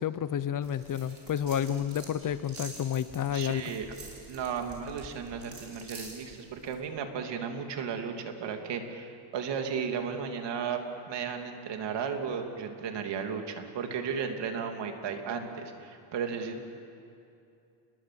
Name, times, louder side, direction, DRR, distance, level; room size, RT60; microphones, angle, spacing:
voice 1, 0.0-3.6, left 9 dB, 45° left, 14 dB, 0.8 m, -30 dB
sound 1, 0.6-6.8, right 3 dB, 30° right, 6.1 m, -48 dB
voice 2, 3.3-3.9 4.3-16.6, right 6 dB, 65° right, 4 dB, 3.0 m, -35 dB
28.5 x 21.0 x 7.7 m, 2.6 s
cardioid pair, 140°, 46 cm